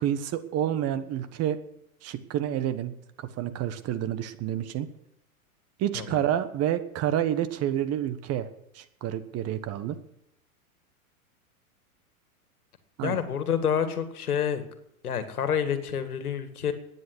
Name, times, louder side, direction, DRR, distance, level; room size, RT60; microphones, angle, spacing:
voice 1, 0.0-1.6 2.0-2.9 3.2-4.9 5.8-8.5 8.7-10.0 13.0-13.2, right 11 dB, 35° right, 12 dB, 1.2 m, -29 dB
voice 2, 5.9-6.2 13.0-14.6 15.0-16.7, left 8 dB, 85° left, 9 dB, 2.0 m, -28 dB
13.0 x 9.6 x 7.9 m, 0.78 s
hypercardioid pair, 110°, 43 cm